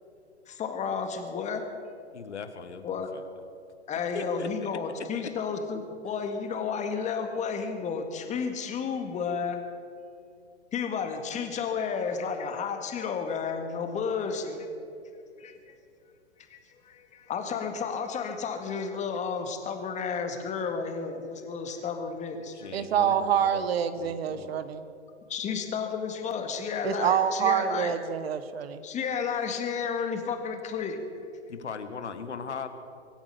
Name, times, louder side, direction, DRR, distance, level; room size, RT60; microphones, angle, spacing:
voice 1, 0.5-1.6 2.8-3.1 3.9-9.6 10.7-14.7 15.4-15.7 16.5-16.6 16.9-22.7 25.3-27.9 28.8-31.0, left 6 dB, 20° left, 6 dB, 1.9 m, -32 dB
voice 2, 2.1-3.2 4.1-5.3 8.2-8.4 22.5-23.7 24.0-24.6 31.5-32.7, left 5 dB, 80° left, 10 dB, 1.4 m, -39 dB
voice 3, 22.7-24.9 26.8-28.8, right 8 dB, 60° right, 12 dB, 1.2 m, -26 dB
23.5 x 8.8 x 6.8 m, 2.4 s
hypercardioid pair, 115°, 34 cm